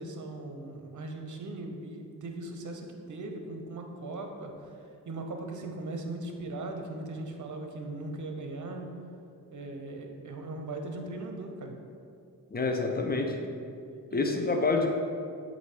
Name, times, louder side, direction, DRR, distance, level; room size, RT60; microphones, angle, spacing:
voice 1, 0.0-4.7 5.0-8.9 9.5-11.8 14.1-14.5, right 2 dB, 50° right, 3 dB, 1.0 m, -39 dB
voice 2, 12.5-13.4 14.1-14.9, left 3 dB, 25° left, 3 dB, 0.8 m, -27 dB
8.0 x 2.8 x 4.6 m, 2.4 s
cardioid pair, 55°, 39 cm